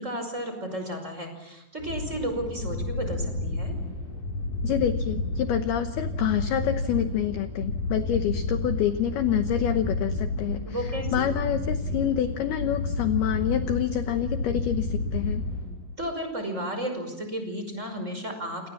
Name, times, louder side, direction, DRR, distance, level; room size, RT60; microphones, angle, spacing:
voice 1, 0.0-3.7 10.6-11.3 16.0-18.7, equal, 15° right, 5 dB, 5.3 m, -33 dB
sound 1, 1.8-16.1, left 2 dB, 40° left, 7.0 m, -31 dB
voice 2, 4.6-10.6 11.1-15.4, left 10 dB, 75° left, 8 dB, 2.3 m, -27 dB
28.5 x 28.5 x 7.3 m, 0.93 s
omnidirectional pair, 6.0 m